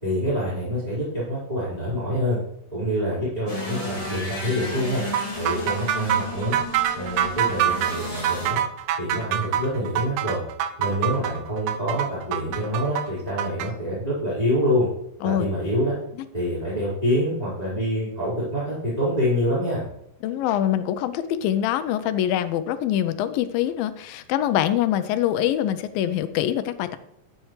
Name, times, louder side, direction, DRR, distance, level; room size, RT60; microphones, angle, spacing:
voice 1, 0.0-2.4 2.7-5.0 5.4-6.6 6.9-8.6 9.0-10.4 10.8-14.9 15.2-15.9 16.3-19.8, equal, 10° right, -11 dB, 4.6 m, -26 dB
sound 1, 3.5-8.5, left 1 dB, 10° left, 1.9 m, -33 dB
sound 2, 5.1-13.7, right 11 dB, 85° right, 2.5 m, -25 dB
voice 2, 20.2-27.0, left 11 dB, 85° left, 12 dB, 2.4 m, -24 dB
13.0 x 9.3 x 3.2 m, 0.77 s
omnidirectional pair, 4.1 m